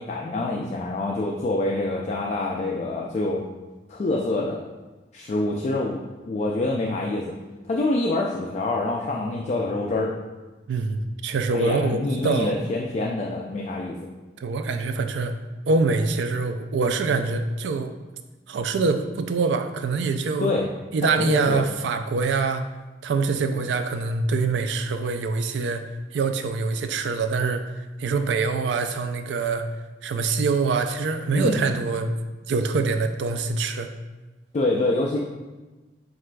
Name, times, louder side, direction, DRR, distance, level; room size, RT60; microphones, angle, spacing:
voice 1, 0.0-3.4 3.9-4.6 5.1-7.3 7.6-10.1 11.5-14.0 20.4-20.7 21.1-21.6 31.3-31.6 34.5-35.2, left 2 dB, 40° left, -1 dB, 0.3 m, -26 dB
voice 2, 10.7-12.5 14.4-15.3 15.7-17.9 18.5-20.5 20.9-22.7 23.0-25.8 26.1-27.6 28.0-29.7 30.0-32.1 32.5-33.9, right 4 dB, 75° right, 8 dB, 0.3 m, -24 dB
7.4 x 2.5 x 2.2 m, 1.2 s
head